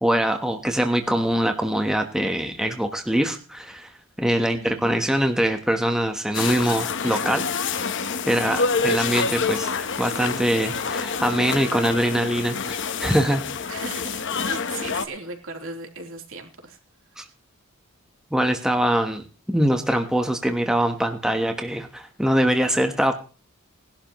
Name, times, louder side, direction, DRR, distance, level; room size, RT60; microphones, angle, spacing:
voice 1, 0.0-3.9 4.2-13.4 17.2-17.3 18.3-23.2, equal, 5° right, 5 dB, 1.1 m, -23 dB
voice 2, 4.4-4.9 8.3-8.7 13.7-16.8, right 3 dB, 65° right, 3 dB, 3.4 m, -38 dB
sound 1, 6.3-15.1, left 5 dB, 55° left, 1.1 m, -27 dB
19.0 x 12.0 x 3.1 m, 0.36 s
head